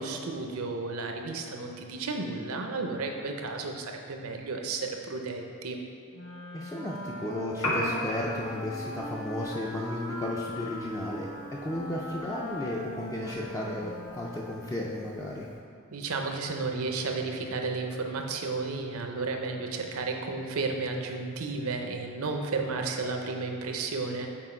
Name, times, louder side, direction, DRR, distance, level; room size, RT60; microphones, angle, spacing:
voice 1, 0.0-5.8 15.9-24.3, right 3 dB, 75° right, 3 dB, 0.6 m, -33 dB
Wind instrument woodwind instrument, 6.1-14.8, left 1 dB, 65° left, 1.1 m, -40 dB
voice 2, 6.5-15.5, left 1 dB, 15° left, -4 dB, 0.4 m, -34 dB
Piano, 7.5-15.6, left 1 dB, 85° left, 1.2 m, -40 dB
6.1 x 4.4 x 4.4 m, 2.5 s
head